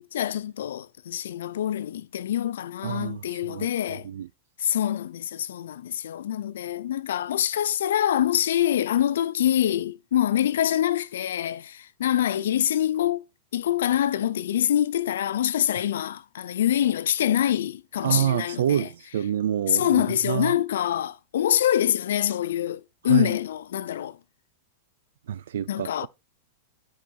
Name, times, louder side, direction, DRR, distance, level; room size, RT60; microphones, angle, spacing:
voice 1, 0.1-4.1 4.6-13.2 13.5-18.9 19.7-24.2 25.7-26.1, left 11 dB, 85° left, 0.5 m, -25 dB
voice 2, 2.8-4.3 18.0-20.6 23.0-23.3 25.3-25.9, right 10 dB, 85° right, 0.4 m, -27 dB
10.0 x 4.0 x 4.6 m
supercardioid pair, 160°, 0 cm